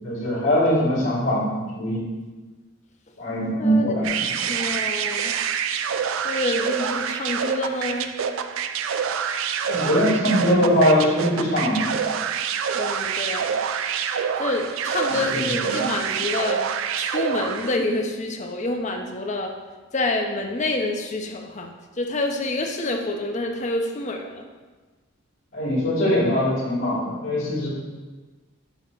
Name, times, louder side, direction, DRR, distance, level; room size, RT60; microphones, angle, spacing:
voice 1, 0.0-2.1 3.2-4.3 9.7-11.9 15.2-15.9 25.5-27.7, equal, 65° left, -6 dB, 2.0 m, -22 dB
voice 2, 3.6-4.0 4.3-5.4 6.2-8.1 12.7-13.6 14.4-16.6 17.0-19.5 19.9-24.4, left 2 dB, 35° left, 3 dB, 0.6 m, -27 dB
sound 1, 4.0-17.9, right 7 dB, 65° right, 0.3 m, -27 dB
7.1 x 2.9 x 5.5 m, 1.3 s
head